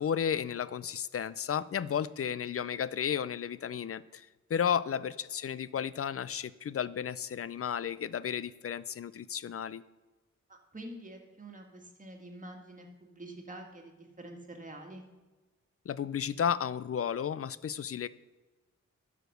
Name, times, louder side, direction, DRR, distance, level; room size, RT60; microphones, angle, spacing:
voice 1, 0.0-9.8 15.9-18.1, left 8 dB, 50° left, 18 dB, 0.4 m, -33 dB
voice 2, 10.5-15.1, right 1 dB, 25° right, 2 dB, 1.8 m, -47 dB
12.0 x 5.1 x 6.5 m, 1.2 s
wide cardioid pair, 105°, 29 cm